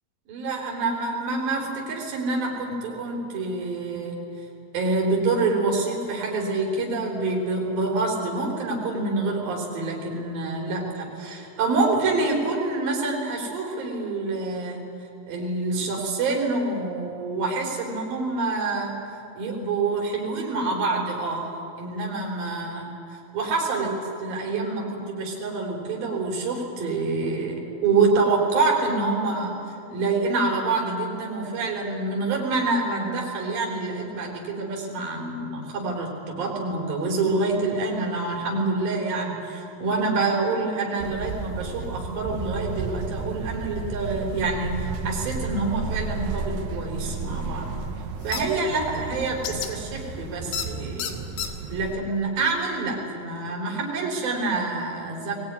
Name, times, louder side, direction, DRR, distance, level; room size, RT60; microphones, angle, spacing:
voice 1, 0.3-4.2 4.7-14.9 15.3-18.9 19.4-21.5 21.8-22.9 23.3-47.7 48.2-51.2 51.7-55.4, right 3 dB, 60° right, -1 dB, 5.5 m, -26 dB
sound 1, 41.0-52.0, right 4 dB, 80° right, 3.6 m, -33 dB
sound 2, 48.3-48.4 49.4-49.7 50.5-50.7 51.0-51.5, left 9 dB, 80° left, 3.5 m, -29 dB
22.0 x 20.0 x 9.7 m, 2.8 s
omnidirectional pair, 4.7 m